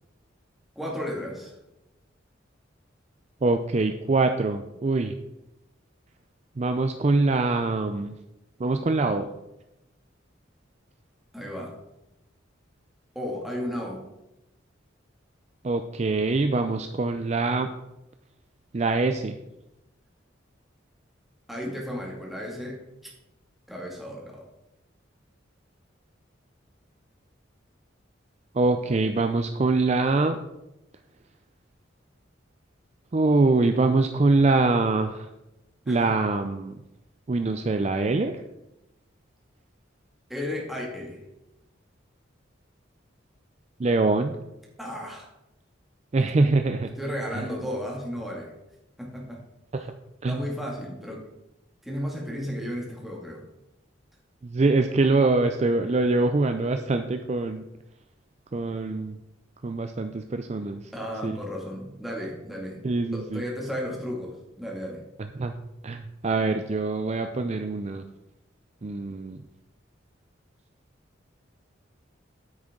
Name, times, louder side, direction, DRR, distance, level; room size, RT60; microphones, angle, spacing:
voice 1, 0.8-1.5 11.3-11.8 13.2-14.1 21.5-23.1 23.7-24.5 35.9-36.1 40.3-41.2 44.8-45.3 46.4-46.5 47.0-48.5 49.0-49.4 50.3-51.3 51.8-53.4 60.9-62.8 63.1-65.0, equal, ahead, -2 dB, 2.2 m, -34 dB
voice 2, 3.4-5.1 6.6-8.1 8.6-9.3 15.6-17.7 18.7-19.4 28.5-30.4 33.1-35.3 35.9-36.7 37.3-38.4 43.8-44.4 46.1-46.9 47.3-47.5 49.7-49.9 50.2-50.4 54.4-57.7 58.5-59.2 59.6-60.8 61.2-61.4 62.8-63.4 65.2-65.5 65.8-68.0 68.8-69.4, right 3 dB, 35° right, 7 dB, 0.4 m, -24 dB
9.6 x 8.5 x 3.8 m, 0.92 s
head